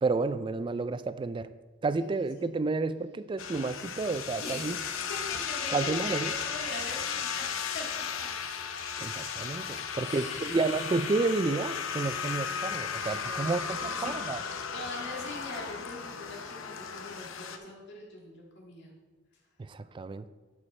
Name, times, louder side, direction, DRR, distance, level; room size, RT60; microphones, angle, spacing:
voice 1, 0.0-1.5 1.8-4.8 5.7-6.3 9.0-14.4 19.6-20.3, right 3 dB, 25° right, 13 dB, 0.3 m, -31 dB
voice 2, 2.0-2.5 4.4-8.3 9.5-10.5 12.8-18.9, left 2 dB, 60° left, -2 dB, 2.1 m, -43 dB
sound 1, 3.4-17.6, left 6 dB, 80° left, 0.7 m, -35 dB
11.5 x 5.1 x 4.2 m, 1.3 s
head